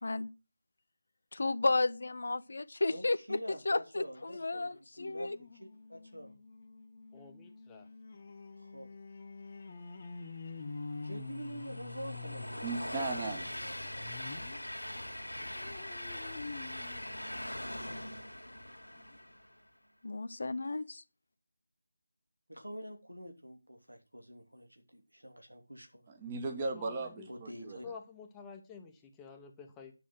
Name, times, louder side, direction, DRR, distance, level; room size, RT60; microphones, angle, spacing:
voice 1, 0.0-0.3 1.3-3.4 3.7-5.4 20.0-21.0, left 3 dB, 50° left, 0.7 m, -33 dB
voice 2, 2.9-6.4 8.6-8.9 11.0-12.9 22.5-26.1 27.3-27.9, equal, 85° right, 3.2 m, -46 dB
sound 1, 5.0-14.6 15.0-18.1 18.6-18.7 19.0-19.1, left 3 dB, 25° left, 1.2 m, -47 dB
voice 3, 7.1-7.9 26.7-27.3 27.8-29.9, left 5 dB, 10° left, 1.0 m, -50 dB
Train, 10.2-19.6, left 1 dB, 80° left, 2.0 m, -42 dB
voice 4, 12.6-13.5 26.2-27.8, right 3 dB, 20° right, 1.3 m, -37 dB
10.0 x 6.3 x 6.2 m
figure-of-eight pair, 160°, 0 cm